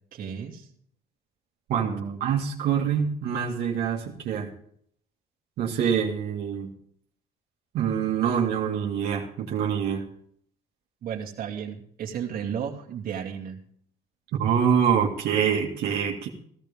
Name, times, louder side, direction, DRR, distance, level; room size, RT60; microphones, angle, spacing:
voice 1, 0.1-0.7 1.8-2.2 11.0-13.6, right 8 dB, 60° right, 0 dB, 2.5 m, -34 dB
voice 2, 2.2-4.5 5.6-6.7 7.7-10.0 14.4-16.3, right 7 dB, 75° right, -2 dB, 2.3 m, -25 dB
16.0 x 13.5 x 3.6 m, 0.63 s
cardioid pair, 110°, 17 cm